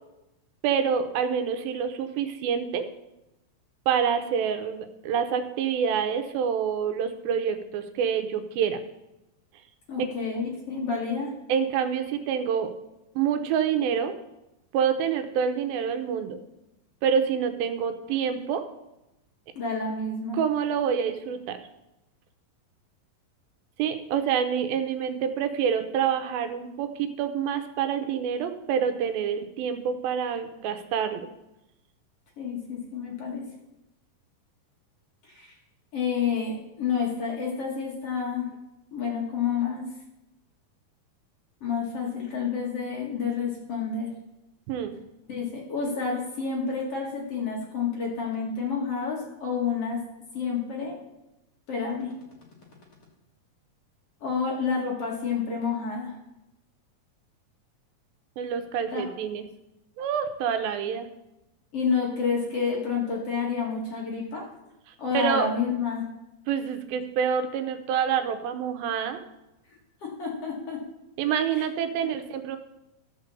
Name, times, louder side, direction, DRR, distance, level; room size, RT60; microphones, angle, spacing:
voice 1, 0.6-2.9 3.9-8.8 10.0-10.1 11.5-12.7 13.2-14.1 14.7-16.4 17.0-18.6 20.3-21.6 23.8-31.3 44.7-45.0 58.4-59.5 60.0-61.1 65.1-65.5 66.5-69.2 71.2-72.6, right 7 dB, 85° right, 8 dB, 2.6 m, -27 dB
voice 2, 9.9-11.3 19.6-20.4 32.4-33.5 35.3-35.5 35.9-38.5 38.9-39.9 41.6-44.1 45.3-50.0 50.3-51.0 51.7-52.1 54.2-56.2 58.9-59.0 61.7-64.4 65.0-66.0 70.0-70.8 71.5-71.7 72.0-72.1, left 5 dB, 50° left, -1 dB, 2.1 m, -29 dB
13.0 x 5.2 x 6.8 m, 0.93 s
omnidirectional pair, 4.1 m